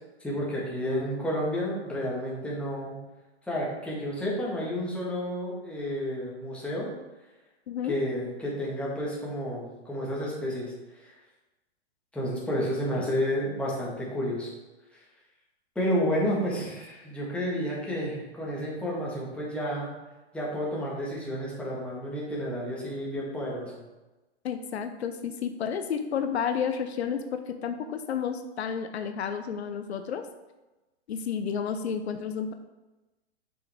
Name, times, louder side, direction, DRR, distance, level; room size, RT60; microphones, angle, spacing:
voice 1, 0.2-3.0 3.4-6.9 7.9-11.1 12.1-14.5 15.7-19.9 20.3-23.7, equal, 5° left, -5 dB, 1.6 m, -31 dB
voice 2, 7.7-8.0 12.9-13.1 24.4-30.2 31.1-32.5, left 7 dB, 75° left, 8 dB, 0.7 m, -31 dB
6.6 x 5.3 x 3.5 m, 1.1 s
hypercardioid pair, 135°, 33 cm